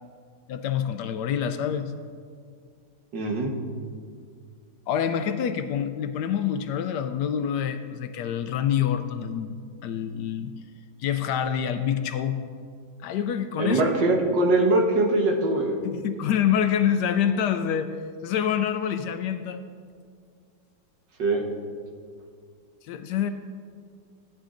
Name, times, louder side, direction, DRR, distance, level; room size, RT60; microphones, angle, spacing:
voice 1, 0.5-1.9 4.9-10.5 11.0-12.4 13.0-13.8 15.8-17.9 18.2-19.6 22.9-23.3, left 9 dB, 75° left, 9 dB, 1.1 m, -26 dB
voice 2, 3.1-3.5 13.6-15.8 21.2-21.4, right 2 dB, 70° right, 0 dB, 1.9 m, -22 dB
15.0 x 10.5 x 2.6 m, 2.1 s
omnidirectional pair, 2.0 m